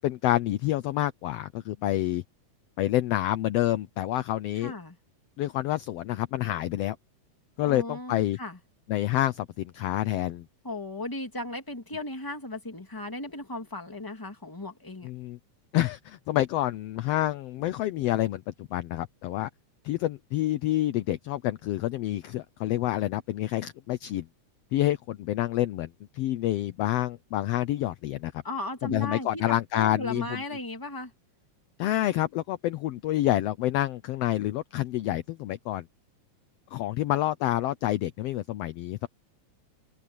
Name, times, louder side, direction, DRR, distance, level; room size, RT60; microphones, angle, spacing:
voice 1, 0.0-2.2 2.8-4.7 5.4-7.0 7.6-8.4 8.9-10.5 15.0-15.4 15.7-19.5 19.8-24.3 24.7-28.3 28.8-30.4 31.8-35.8 36.7-39.1, left 14 dB, 75° left, 1.6 m, -28 dB
voice 2, 4.6-5.0 7.6-8.6 10.6-15.1 28.4-31.1, left 2 dB, 5° left, 2.3 m, -36 dB
omnidirectional pair, 3.3 m